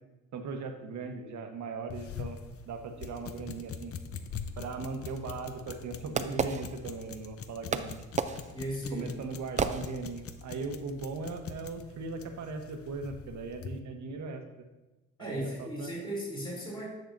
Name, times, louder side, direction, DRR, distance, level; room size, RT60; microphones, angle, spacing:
voice 1, 0.3-2.4 2.7-3.9 4.6-8.0 8.9-14.6 15.2-15.9, right 4 dB, 65° right, 6 dB, 1.1 m, -38 dB
sound 1, 1.9-13.8, left 6 dB, 50° left, 0.7 m, -44 dB
Fireworks, 5.0-7.3 7.7-10.4, right 5 dB, 25° right, 0.4 m, -34 dB
voice 2, 8.5-9.1 15.2-16.9, right 1 dB, 15° left, -3 dB, 2.8 m, -36 dB
10.5 x 6.4 x 2.6 m, 1.1 s
cardioid pair, 90°, 30 cm